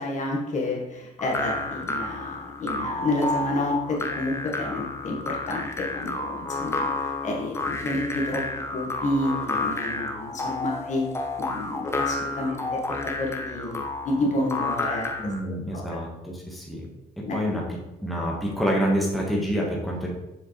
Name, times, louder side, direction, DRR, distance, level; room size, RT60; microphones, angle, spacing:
voice 1, 0.0-8.4 8.7-11.1 11.4-15.1 15.4-15.9 17.2-17.4, left 2 dB, 45° left, -1 dB, 1.6 m, -29 dB
sound 1, 1.2-15.4, left 2 dB, 15° left, 0.7 m, -31 dB
voice 2, 15.2-16.9 17.2-17.6 18.0-20.1, equal, ahead, -3 dB, 1.4 m, -27 dB
7.0 x 5.0 x 3.2 m, 0.91 s
cardioid pair, 110°, 17 cm